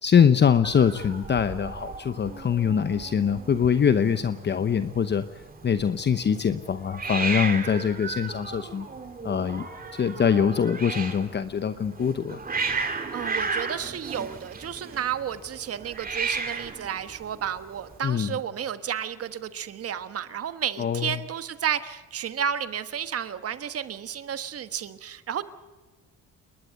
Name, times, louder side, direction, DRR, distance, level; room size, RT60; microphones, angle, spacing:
voice 1, 0.0-5.2 5.6-8.9 9.2-9.6 10.0-12.4 18.0-18.3 20.8-21.2, left 7 dB, 35° left, 11 dB, 0.9 m, -23 dB
Hiss, 0.6-18.0, right 4 dB, 30° right, 3.0 m, -35 dB
voice 2, 13.1-25.4, right 9 dB, 50° right, 11 dB, 1.4 m, -32 dB
29.0 x 12.0 x 9.2 m, 1.3 s
cardioid pair, 100°, 30 cm